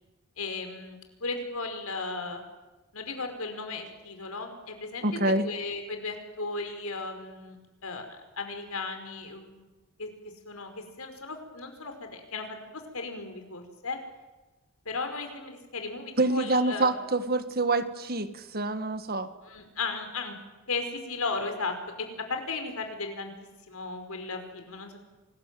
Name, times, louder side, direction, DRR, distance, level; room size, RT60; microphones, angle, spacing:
voice 1, 0.4-2.4 2.9-7.6 7.8-8.1 8.3-9.7 10.0-10.1 10.5-14.0 14.9-16.9 19.4-20.4 20.7-23.3 23.7-25.0, left 3 dB, 85° left, 6 dB, 5.3 m, -35 dB
voice 2, 5.0-5.4 16.2-19.3, right 2 dB, 45° right, 10 dB, 1.7 m, -26 dB
27.0 x 20.5 x 9.3 m, 1.1 s
head